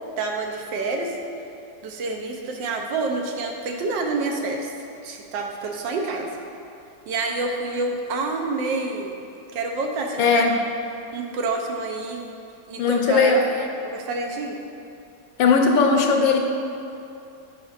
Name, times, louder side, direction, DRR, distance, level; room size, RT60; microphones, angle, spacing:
voice 1, 0.2-1.2 1.8-4.7 5.0-6.3 7.1-9.1 9.5-10.5 11.1-12.3 12.7-13.5 13.8-14.6, right 3 dB, 80° right, 2 dB, 1.4 m, -28 dB
voice 2, 10.2-10.5 12.8-13.7 15.4-16.4, left 4 dB, 80° left, 3 dB, 1.4 m, -18 dB
9.1 x 6.0 x 2.5 m, 2.7 s
omnidirectional pair, 2.0 m